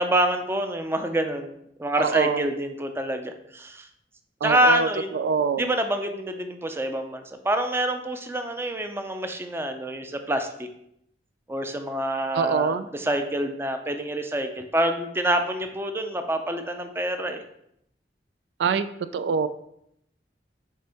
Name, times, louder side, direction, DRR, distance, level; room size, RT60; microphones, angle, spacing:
voice 1, 0.0-1.5 1.8-3.9 4.4-5.1 5.6-10.7 11.5-17.4, right 1 dB, 15° right, 6 dB, 0.5 m, -26 dB
voice 2, 2.0-2.5 4.4-4.9 5.1-5.7 12.3-12.9 18.6-18.9 19.1-19.5, right 5 dB, 75° right, 12 dB, 0.3 m, -24 dB
6.5 x 4.5 x 3.4 m, 0.76 s
head